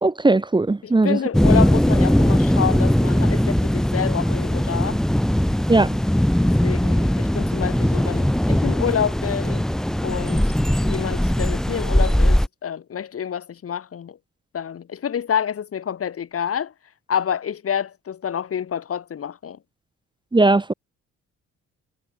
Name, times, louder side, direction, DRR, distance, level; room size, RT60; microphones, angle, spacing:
voice 1, 0.0-1.2 5.7-6.0 20.3-20.7, right 2 dB, 15° right, 1.2 m, -18 dB
voice 2, 0.8-5.0 6.4-9.6 10.0-10.6 10.8-14.2 14.5-16.7 17.1-19.6, left 8 dB, 50° left, 1.7 m, -28 dB
sound 1, 1.3-12.5, equal, ahead, 0.5 m, -19 dB
cardioid pair, 90°, 30 cm